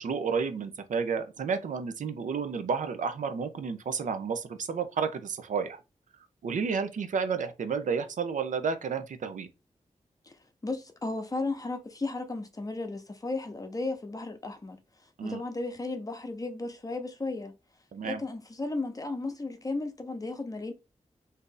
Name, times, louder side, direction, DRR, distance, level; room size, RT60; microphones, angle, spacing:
voice 1, 0.0-5.8 6.4-9.5 15.2-15.4 17.9-18.2, right 5 dB, 90° right, 0.5 m, -31 dB
voice 2, 10.6-14.8 15.2-17.5 18.0-20.7, left 2 dB, 30° left, 0.6 m, -34 dB
2.7 x 2.4 x 3.8 m
wide cardioid pair, 90°, 13 cm